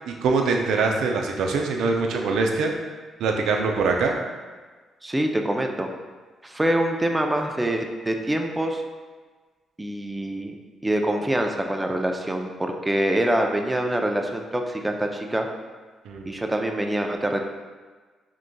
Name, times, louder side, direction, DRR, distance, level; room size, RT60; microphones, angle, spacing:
voice 1, 0.1-2.7 3.2-4.1 16.1-16.4, right 4 dB, 75° right, 3 dB, 0.5 m, -23 dB
voice 2, 5.0-5.9 6.4-8.8 9.8-10.5 10.8-15.5 16.3-17.4, right 1 dB, 15° right, 3 dB, 0.5 m, -25 dB
4.9 x 3.7 x 2.3 m, 1.4 s
supercardioid pair, 50°, 0 cm